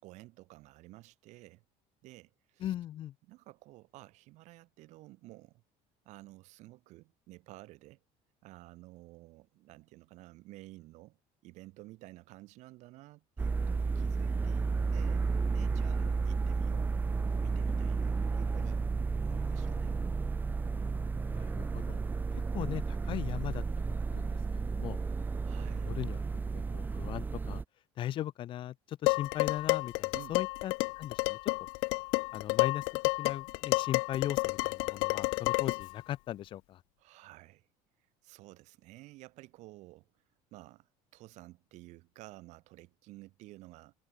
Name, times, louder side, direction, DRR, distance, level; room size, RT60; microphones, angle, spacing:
voice 1, 0.0-1.6 2.0-2.7 3.2-5.6 6.1-8.0 8.4-11.2 11.4-15.3 15.5-16.9 17.4-18.9 19.2-20.1 25.4-25.9 30.1-30.3 37.0-37.7 38.2-40.1 40.5-43.9, right 19 dB, 60° right, 5.3 m, -53 dB
voice 2, 2.6-3.1 16.0-16.2 21.3-22.0 22.3-23.6 23.9-25.0 25.7-26.2 26.5-27.6 28.0-31.5 32.3-32.9 33.2-36.8, left 12 dB, 40° left, 1.2 m, -39 dB
sound 1, 13.4-27.6, right 4 dB, 15° right, 0.8 m, -32 dB
Dishes pots and pans, 29.1-35.9, left 38 dB, 90° left, 0.6 m, -30 dB
cardioid pair, 165°, 13 cm